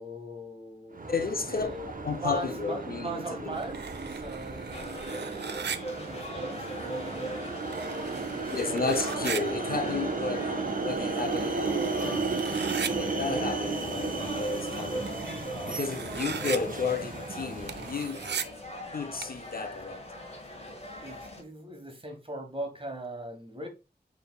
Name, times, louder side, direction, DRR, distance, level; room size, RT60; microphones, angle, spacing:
voice 1, 0.0-1.1 1.5-5.0 6.0-7.7 8.0-9.3 9.7-11.4 13.7-14.1 14.9-15.2 15.9-16.5 20.6-23.7, right 1 dB, 30° right, 1.4 m, -41 dB
sound 1, 0.9-18.4, right 4 dB, 50° right, 0.7 m, -34 dB
voice 2, 1.1-1.7 2.0-3.6 8.5-12.5 12.9-15.2 15.7-18.3 18.9-20.1, left 4 dB, 60° left, 0.6 m, -33 dB
sound 2, 3.5-5.8 7.3-7.4 7.5-9.4 10.3-10.4 10.9-12.9 14.3-14.4 14.7-16.6 17.7-18.4 19.2-19.3, right 6 dB, 85° right, 0.4 m, -38 dB
sound 3, 4.7-21.4, left 1 dB, 40° left, 1.4 m, -40 dB
6.7 x 3.4 x 2.3 m
wide cardioid pair, 70°, 17 cm